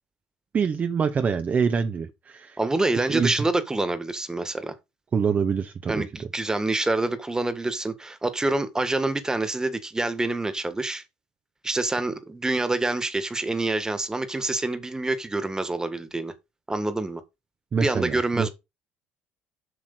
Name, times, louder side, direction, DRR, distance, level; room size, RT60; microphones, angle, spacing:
voice 1, 0.5-2.6 3.1-3.4 5.1-6.3 17.7-18.5, right 6 dB, 40° right, 1.1 m, -25 dB
voice 2, 2.6-4.7 5.9-11.0 11.6-16.3 16.7-17.2 17.8-18.5, right 2 dB, 15° right, 1.9 m, -26 dB
8.1 x 6.1 x 4.0 m
hypercardioid pair, 70°, 4 cm